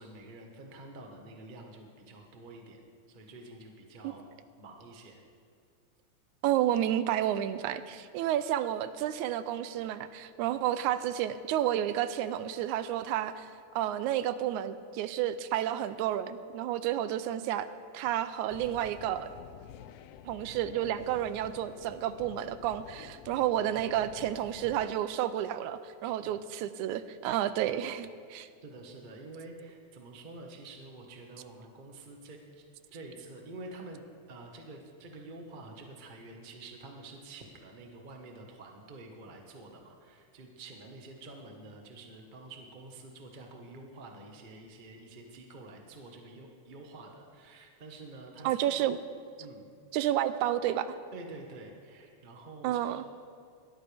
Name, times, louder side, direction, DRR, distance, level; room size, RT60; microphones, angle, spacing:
voice 1, 0.0-2.8 3.1-4.3 4.6-5.2 26.0-26.4 28.6-32.6 32.9-34.0 34.3-48.6 49.4-49.7 51.1-53.0, right 2 dB, 50° right, 2 dB, 0.6 m, -48 dB
voice 2, 6.4-13.5 13.8-17.7 17.9-19.3 20.3-28.5 48.4-49.0 49.9-51.0 52.6-53.0, right 11 dB, 80° right, 13 dB, 1.9 m, -31 dB
sound 1, 18.5-24.9, left 10 dB, 85° left, 1.5 m, -49 dB
21.0 x 13.5 x 3.5 m, 2.2 s
omnidirectional pair, 3.5 m